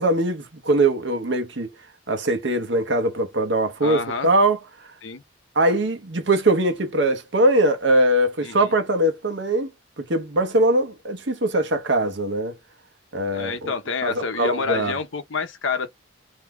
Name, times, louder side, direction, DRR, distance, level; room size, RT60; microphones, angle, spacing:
voice 1, 0.0-1.7 2.1-4.6 5.6-9.7 10.0-12.6 13.1-13.7 14.0-14.9, right 1 dB, 70° right, 0.9 m, -21 dB
voice 2, 3.8-4.3 5.0-5.2 8.4-8.7 13.3-15.9, left 4 dB, 85° left, 0.7 m, -28 dB
2.7 x 2.2 x 3.4 m
head